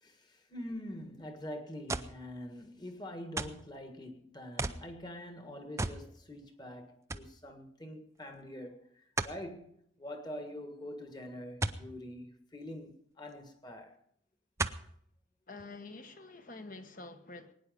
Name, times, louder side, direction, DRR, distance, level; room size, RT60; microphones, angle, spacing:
voice 1, 0.0-14.0, left 1 dB, 20° left, 1.6 m, -45 dB
sound 1, 1.9-2.2 3.4-3.7 4.6-4.9 5.8-6.1 6.4-6.5 7.1-7.3 9.2-9.4 11.6-11.9 13.3-13.4 14.6-14.9 15.6-15.7, right 2 dB, 15° right, 0.5 m, -35 dB
voice 2, 15.5-17.5, left 3 dB, 40° left, 1.2 m, -47 dB
21.0 x 9.8 x 5.3 m
head